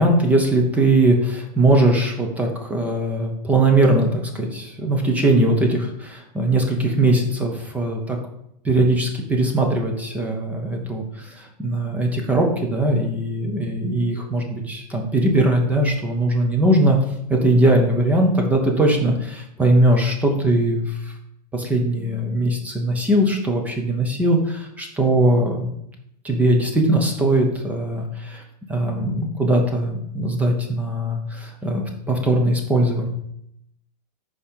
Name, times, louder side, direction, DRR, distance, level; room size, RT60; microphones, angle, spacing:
voice 1, 0.0-8.2 8.6-17.0 17.3-21.1 21.5-25.7 26.2-28.4 28.7-33.1, right 1 dB, 5° right, 2 dB, 0.5 m, -20 dB
5.3 x 4.8 x 4.3 m, 0.76 s
supercardioid pair, 165°, 21 cm